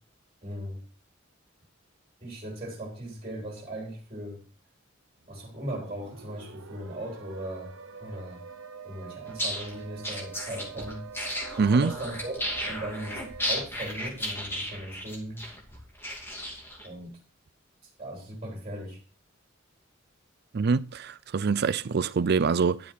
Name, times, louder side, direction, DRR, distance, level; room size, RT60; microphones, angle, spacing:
voice 1, 0.4-0.8 2.2-4.4 5.3-7.7 8.0-8.4 8.8-11.1 11.5-13.2 13.5-15.4 16.8-17.2 18.0-19.0, right 1 dB, 30° right, 3.2 m, -38 dB
sound 1, 5.2-13.7, right 6 dB, 75° right, 1.0 m, -45 dB
sound 2, 9.3-16.9, equal, 10° left, 2.5 m, -34 dB
voice 2, 11.6-11.9 20.5-22.9, right 5 dB, 50° right, 0.4 m, -25 dB
10.5 x 7.3 x 4.3 m
head